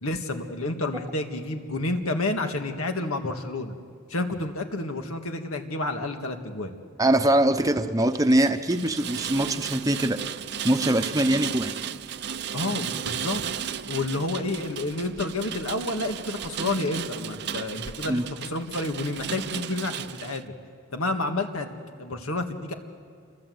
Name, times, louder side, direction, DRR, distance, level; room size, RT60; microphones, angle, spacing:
voice 1, 0.0-3.8 4.1-6.7 12.5-13.4 13.9-20.5 20.9-22.7, left 2 dB, 85° left, 5 dB, 2.0 m, -30 dB
voice 2, 7.0-10.2 10.6-11.7 18.1-18.3, right 1 dB, 15° right, 7 dB, 0.9 m, -22 dB
Rain, 8.1-20.4, right 8 dB, 55° right, 0.7 m, -35 dB
28.5 x 23.5 x 8.0 m, 2.2 s
head